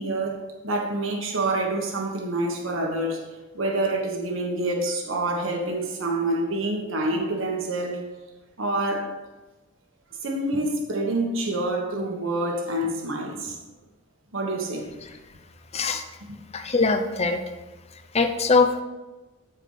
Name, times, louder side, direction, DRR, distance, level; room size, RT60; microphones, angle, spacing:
voice 1, 0.0-3.3 3.5-8.0 8.6-9.1 10.2-13.6 14.3-14.9 16.2-16.3, right 2 dB, 70° right, 1 dB, 1.4 m, -27 dB
voice 2, 16.5-17.4 18.1-18.8, left 4 dB, 30° left, 6 dB, 0.6 m, -21 dB
13.5 x 4.6 x 4.0 m, 1.1 s
head